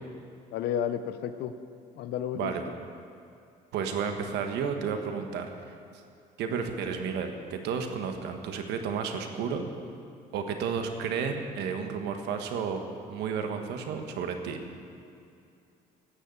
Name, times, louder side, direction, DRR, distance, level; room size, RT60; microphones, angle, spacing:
voice 1, 0.5-1.5 2.0-2.5, left 9 dB, 75° left, 9 dB, 0.7 m, -31 dB
voice 2, 3.7-5.5 6.4-9.7 10.3-12.8 13.1-14.6, right 6 dB, 80° right, 5 dB, 1.4 m, -32 dB
17.0 x 6.5 x 8.3 m, 2.4 s
cardioid pair, 110°, 17 cm